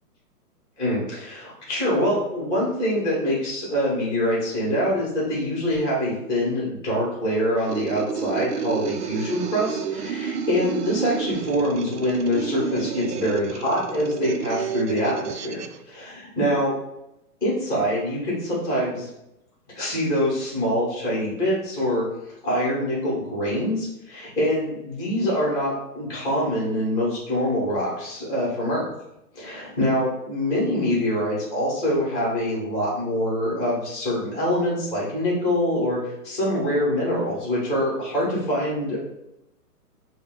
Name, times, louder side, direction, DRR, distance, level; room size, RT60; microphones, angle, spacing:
voice 1, 0.8-16.7 17.4-19.1 19.7-22.0 22.4-28.9 29.3-39.0, equal, 10° left, -6 dB, 1.0 m, -25 dB
sound 1, 7.6-15.8, right 7 dB, 75° right, 0.6 m, -30 dB
4.3 x 2.2 x 3.6 m, 0.85 s
hypercardioid pair, 165°, 47 cm